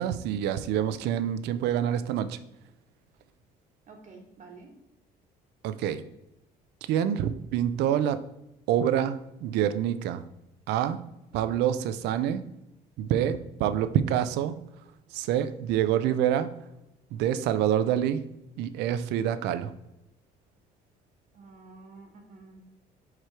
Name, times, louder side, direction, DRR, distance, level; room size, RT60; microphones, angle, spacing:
voice 1, 0.0-2.4 5.6-6.0 6.9-8.2 8.7-10.2 10.7-11.0 11.3-12.4 13.0-14.6 15.1-16.5 17.1-18.2 18.6-19.7, right 10 dB, 85° right, 12 dB, 0.5 m, -26 dB
voice 2, 3.9-4.7 21.3-22.7, right 3 dB, 45° right, 1 dB, 1.2 m, -49 dB
4.9 x 4.7 x 4.4 m, 0.88 s
cardioid pair, 110°, 17 cm